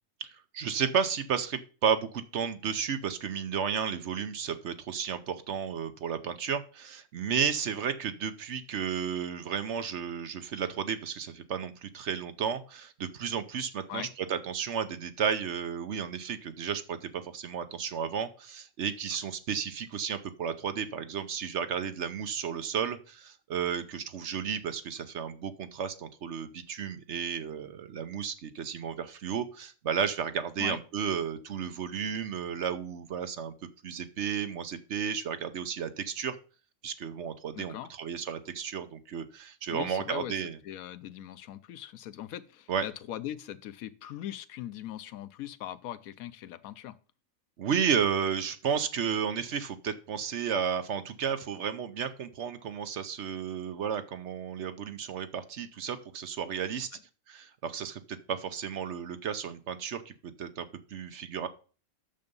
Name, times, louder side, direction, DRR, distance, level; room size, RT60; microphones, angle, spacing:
voice 1, 0.5-33.5 33.8-36.4 36.8-40.6 42.7-42.8 47.6-56.9 57.3-60.1 60.4-60.7 60.9-61.5, right 7 dB, 60° right, 1.0 m, -33 dB
voice 2, 37.5-37.9 39.7-40.4 40.6-47.0 56.9-57.0, left 12 dB, 90° left, 1.1 m, -40 dB
8.8 x 6.7 x 5.3 m
omnidirectional pair, 1.4 m